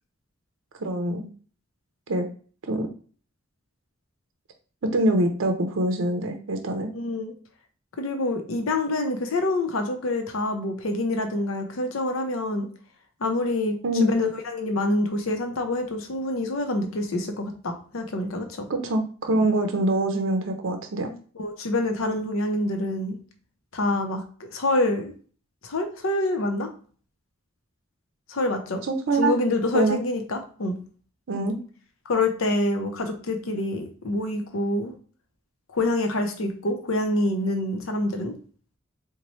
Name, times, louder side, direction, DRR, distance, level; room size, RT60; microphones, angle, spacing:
voice 1, 0.8-1.3 2.1-2.3 2.7-2.9 4.8-6.9 13.8-14.1 18.7-21.1 28.8-29.3 29.7-30.0 31.3-31.6, right 1 dB, 65° right, 5 dB, 0.5 m, -24 dB
voice 2, 6.9-7.3 8.0-12.7 13.2-18.7 21.4-23.2 23.7-24.2 24.5-25.1 25.6-26.7 28.3-28.8 29.1-30.8 32.1-34.9 35.7-38.3, left 2 dB, 90° left, 5 dB, 0.7 m, -26 dB
4.0 x 2.2 x 3.0 m, 0.42 s
head